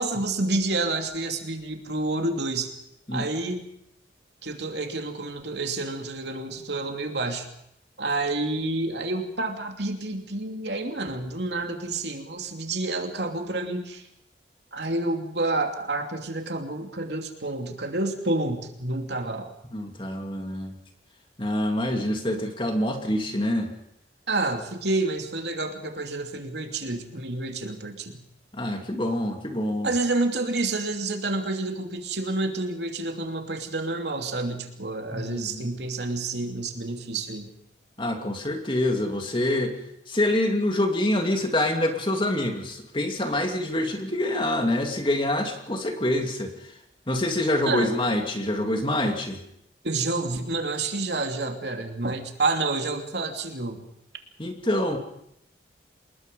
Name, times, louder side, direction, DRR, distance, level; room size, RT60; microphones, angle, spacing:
voice 1, 0.0-2.7 3.1-3.6 4.4-7.5 8.0-14.0 14.7-19.5 24.3-28.2 29.8-37.5 47.6-47.9 49.8-53.8, right 2 dB, 70° right, 4 dB, 2.9 m, -29 dB
voice 2, 19.7-20.7 21.4-23.7 28.5-29.9 35.1-35.7 38.0-39.8 40.1-46.5 47.1-49.4 54.4-55.0, left 1 dB, 25° left, 4 dB, 2.6 m, -26 dB
27.0 x 21.0 x 5.5 m, 0.76 s
head